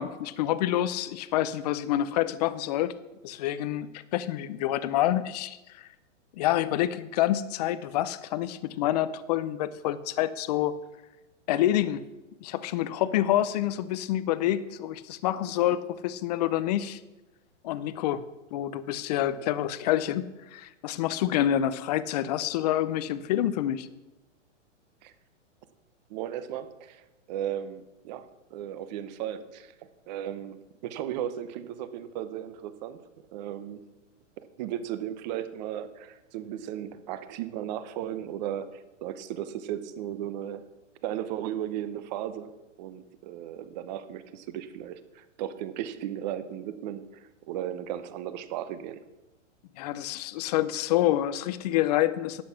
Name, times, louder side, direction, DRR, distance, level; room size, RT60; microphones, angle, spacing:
voice 1, 0.0-2.9 3.2-5.9 6.3-10.7 11.5-12.0 12.4-17.0 17.6-18.2 18.5-23.9 49.8-52.4, left 12 dB, 35° left, 15 dB, 0.5 m, -27 dB
voice 2, 26.1-29.7 30.1-33.0 33.3-33.8 34.6-40.6 41.0-42.5 42.8-49.0, right 11 dB, 35° right, 12 dB, 0.9 m, -36 dB
11.5 x 8.1 x 5.8 m, 1.0 s
hypercardioid pair, 145°, 38 cm